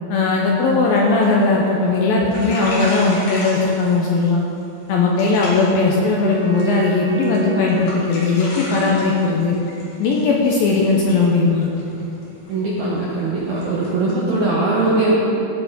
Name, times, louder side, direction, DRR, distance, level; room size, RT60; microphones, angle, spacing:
voice 1, 0.1-4.4 4.9-9.5 10.0-11.7, left 3 dB, 80° left, -2 dB, 2.1 m, -18 dB
sound 1, 0.7-1.0 1.2-1.7 1.9-2.0 2.2-4.3 4.6-4.9 5.2-5.8 6.1-6.8 7.2-7.4 7.7-14.1, left 1 dB, 50° left, 3.6 m, -33 dB
Wind instrument woodwind instrument, 4.9-9.0, right 4 dB, 55° right, 4.5 m, -31 dB
voice 2, 12.5-15.2, right 2 dB, 75° right, -6 dB, 1.8 m, -20 dB
17.0 x 6.4 x 5.2 m, 2.8 s
omnidirectional pair, 5.4 m